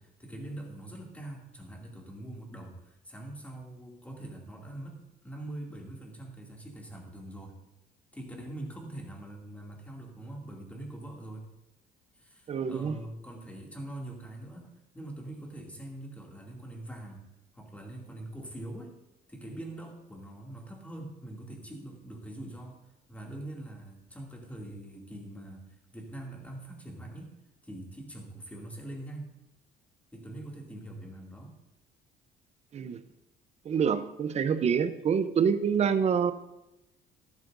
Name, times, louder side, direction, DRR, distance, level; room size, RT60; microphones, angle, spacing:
voice 1, 0.0-7.6 8.1-11.5 12.2-17.2 17.5-19.0 19.3-22.8 23.1-27.4 27.6-29.3 30.1-31.5, right 1 dB, 10° left, -1 dB, 2.5 m, -43 dB
voice 2, 12.5-13.0 32.7-33.0 33.6-36.3, right 7 dB, 40° right, 12 dB, 0.7 m, -26 dB
12.5 x 12.0 x 2.6 m, 0.93 s
cardioid pair, 110°, 17 cm